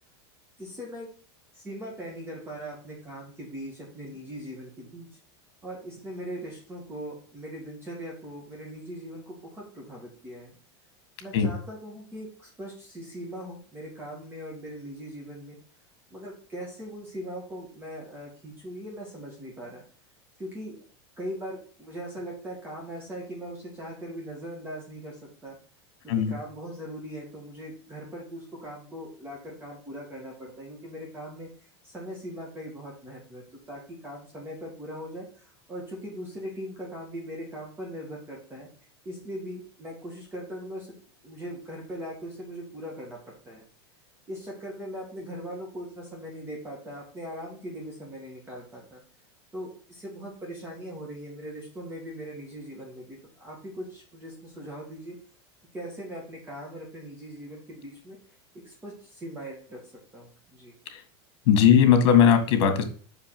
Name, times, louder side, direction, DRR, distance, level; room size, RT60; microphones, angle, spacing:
voice 1, 0.6-1.1 1.5-5.1 5.6-10.5 11.2-15.6 16.1-19.8 20.4-20.8 21.2-25.6 26.0-38.7 39.0-41.0 41.2-43.2 43.5-43.6 44.3-49.0 49.5-55.2 55.7-58.2 58.6-59.8 60.1-60.7, equal, 15° right, -2 dB, 2.3 m, -40 dB
voice 2, 61.5-62.8, left 8 dB, 65° left, 6 dB, 2.0 m, -18 dB
5.5 x 5.1 x 6.1 m, 0.43 s
supercardioid pair, 135°, 14 cm